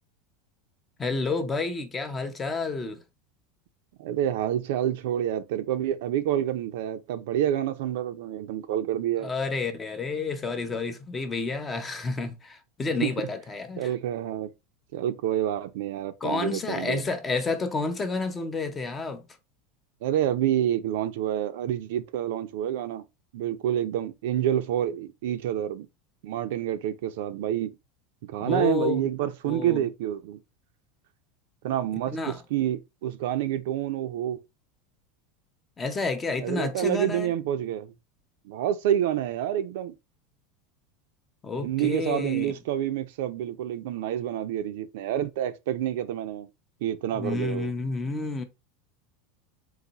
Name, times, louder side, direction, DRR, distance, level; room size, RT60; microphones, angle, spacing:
voice 1, 1.0-3.0 9.2-13.9 16.2-19.2 28.4-29.0 29.5-29.9 32.1-32.4 35.8-37.3 41.4-42.5 47.1-48.4, left 4 dB, 15° left, 0.6 m, -30 dB
voice 2, 4.0-9.3 13.0-13.3 13.8-14.5 14.9-17.0 20.0-23.0 23.3-25.9 26.2-27.8 28.3-30.4 31.6-34.4 36.4-37.9 38.4-39.9 41.6-46.5 46.8-47.7, right 11 dB, 70° right, 0.5 m, -28 dB
4.0 x 2.6 x 4.0 m
supercardioid pair, 160°, 0 cm